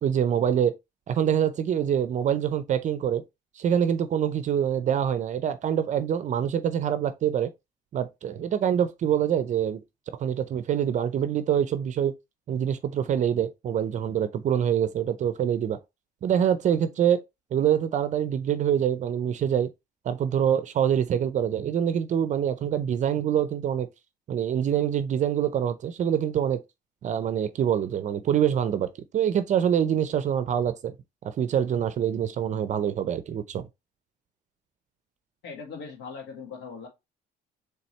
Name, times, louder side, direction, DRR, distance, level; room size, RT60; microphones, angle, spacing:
voice 1, 0.0-0.7 1.1-3.2 3.6-7.5 7.9-9.8 10.2-12.1 12.5-15.8 16.2-17.2 17.5-19.7 20.0-23.9 24.3-26.6 27.0-28.9 29.1-31.0 31.2-33.7, right 9 dB, 45° right, 0.5 m, -25 dB
voice 2, 35.4-36.9, left 5 dB, 90° left, 1.7 m, -40 dB
4.2 x 3.4 x 3.2 m
cardioid pair, 110°, 17 cm